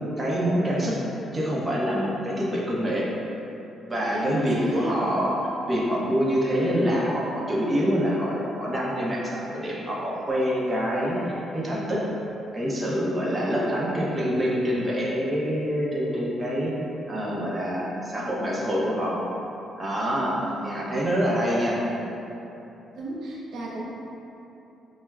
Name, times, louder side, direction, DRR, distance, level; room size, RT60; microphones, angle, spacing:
voice 1, 0.2-1.0 1.3-3.1 3.9-5.3 5.7-12.0 12.5-16.7 17.1-19.2 19.8-20.4 20.6-21.8, equal, 20° right, -5 dB, 0.7 m, -26 dB
voice 2, 4.1-5.0 20.2-20.9 22.9-23.8, right 2 dB, 70° right, -4 dB, 0.4 m, -34 dB
5.8 x 2.1 x 2.3 m, 3.0 s
cardioid pair, 90°, 0 cm